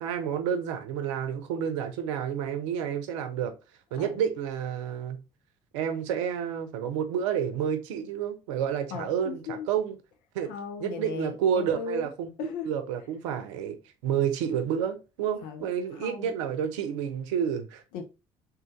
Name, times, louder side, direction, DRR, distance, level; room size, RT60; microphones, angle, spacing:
voice 1, 0.0-3.5 3.9-5.2 5.7-10.0 10.3-10.5 10.8-13.8 14.0-17.8, right 8 dB, 70° right, 0.6 m, -30 dB
voice 2, 8.9-9.7 10.5-12.1 12.4-12.7 15.4-15.7 15.9-16.3 17.9-18.0, left 6 dB, 65° left, 0.8 m, -37 dB
3.7 x 2.8 x 3.7 m
figure-of-eight pair, 50°, 16 cm